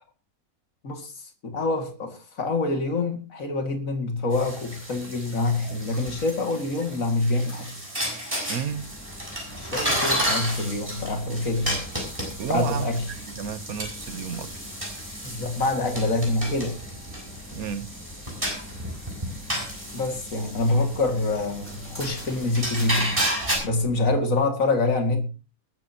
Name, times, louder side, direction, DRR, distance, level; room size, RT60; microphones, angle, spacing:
voice 1, 1.4-7.8 9.6-11.8 12.5-13.0 15.2-16.8 19.9-23.2 23.6-25.3, left 2 dB, 65° left, 2.6 m, -26 dB
sound 1, 4.3-23.6, equal, 20° right, 6.5 m, -32 dB
voice 2, 8.5-8.9 12.4-14.6 17.5-17.9, right 7 dB, 85° right, 1.5 m, -32 dB
sound 2, 8.7-24.2, left 1 dB, 10° left, 3.9 m, -44 dB
20.5 x 12.0 x 2.9 m
omnidirectional pair, 1.5 m